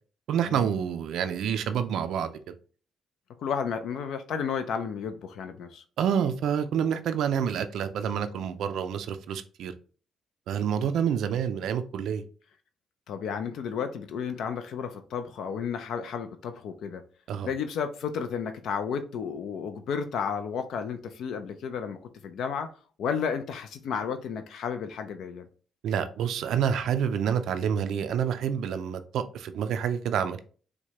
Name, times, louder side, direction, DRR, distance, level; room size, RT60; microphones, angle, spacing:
voice 1, 0.3-2.5 6.0-9.7 10.5-12.2 17.3-17.5 25.8-30.4, right 8 dB, 75° right, 0.3 m, -28 dB
voice 2, 3.4-5.8 13.1-17.0 17.4-22.0 22.2-22.7 23.0-25.5, left 6 dB, 75° left, 0.4 m, -32 dB
4.5 x 2.1 x 2.8 m
cardioid pair, 90°, 0 cm